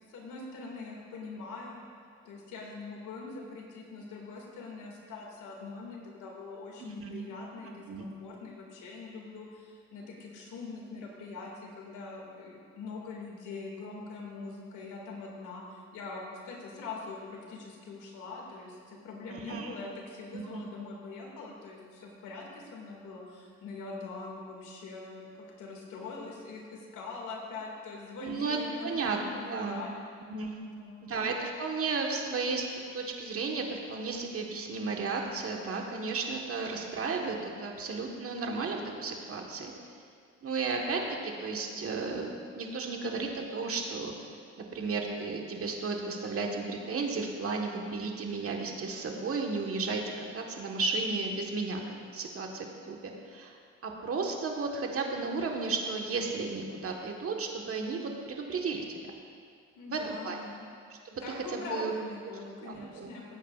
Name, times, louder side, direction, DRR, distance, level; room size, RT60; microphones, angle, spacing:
voice 1, 0.1-1.8 2.2-25.3 25.6-30.0 30.6-31.1 59.7-60.6 61.2-63.4, left 3 dB, 85° left, -1 dB, 2.2 m, -43 dB
voice 2, 6.8-7.2 7.9-8.0 19.3-19.7 20.3-20.6 28.2-29.2 29.5-29.8 30.3-30.6 31.0-39.7 40.4-44.1 44.6-50.0 50.3-51.8 52.1-59.0 59.9-60.4 60.9-61.9 62.6-63.1, right 4 dB, 50° right, 1 dB, 1.4 m, -34 dB
17.5 x 8.3 x 2.4 m, 2.2 s
cardioid pair, 90°, 30 cm